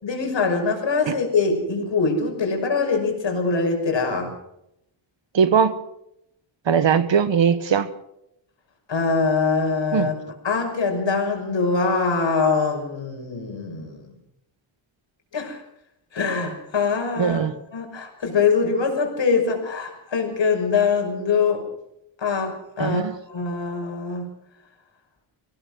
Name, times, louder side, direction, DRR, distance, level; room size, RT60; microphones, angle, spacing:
voice 1, 0.0-4.3 8.9-10.1 10.4-14.1 15.3-15.6 16.1-21.7 22.2-23.0 23.3-24.3, left 4 dB, 60° left, 6.0 m, -23 dB
voice 2, 5.3-5.8 6.7-7.9 9.9-10.1 17.2-17.5 22.8-23.1, right 7 dB, 60° right, 1.3 m, -20 dB
23.5 x 17.5 x 6.2 m
wide cardioid pair, 115°, 49 cm